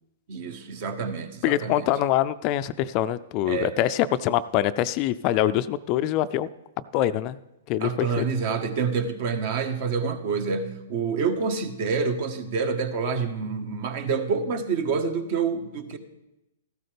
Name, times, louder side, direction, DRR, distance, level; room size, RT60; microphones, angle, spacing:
voice 1, 0.3-1.9 3.5-3.8 7.8-16.0, right 5 dB, 50° right, 8 dB, 1.3 m, -27 dB
voice 2, 1.4-6.5 6.9-7.4 7.7-8.2, left 12 dB, 40° left, 14 dB, 0.4 m, -24 dB
14.5 x 12.5 x 3.4 m, 0.92 s
hypercardioid pair, 115°, 0 cm